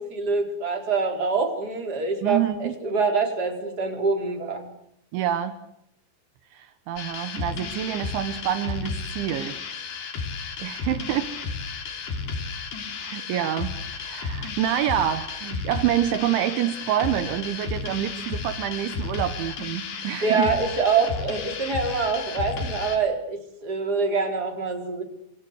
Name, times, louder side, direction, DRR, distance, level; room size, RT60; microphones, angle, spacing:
voice 1, 0.0-4.7 20.2-25.0, right 4 dB, 20° right, 3 dB, 4.3 m, -25 dB
voice 2, 2.2-2.8 5.1-5.5 6.5-9.5 10.6-11.3 13.0-20.6, right 11 dB, 75° right, 9 dB, 3.4 m, -27 dB
sound 1, 7.0-23.0, left 4 dB, 55° left, 5.1 m, -33 dB
28.0 x 25.0 x 8.2 m, 0.75 s
omnidirectional pair, 5.7 m